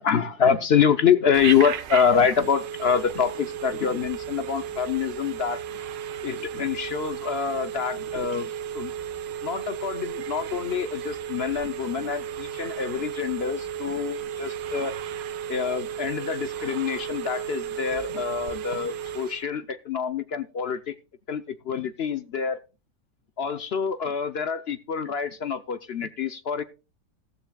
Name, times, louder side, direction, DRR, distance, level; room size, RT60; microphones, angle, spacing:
voice 1, 0.0-5.6 6.2-8.9 9.4-15.0 15.5-20.9 21.3-22.6 23.4-26.6, left 7 dB, 60° left, 11 dB, 0.6 m, -26 dB
Telephone, 1.3-19.4, right 9 dB, 85° right, 1.6 m, -34 dB
14.5 x 14.0 x 2.3 m, 0.31 s
omnidirectional pair, 1.9 m